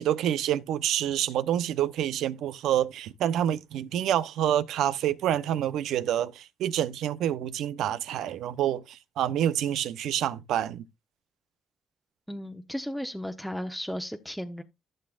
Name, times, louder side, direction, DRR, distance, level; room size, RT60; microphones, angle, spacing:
voice 1, 0.0-10.8, right 11 dB, 85° right, 0.8 m, -27 dB
voice 2, 12.3-14.6, equal, ahead, 1.0 m, -35 dB
15.0 x 6.6 x 2.5 m
cardioid pair, 90°, 0 cm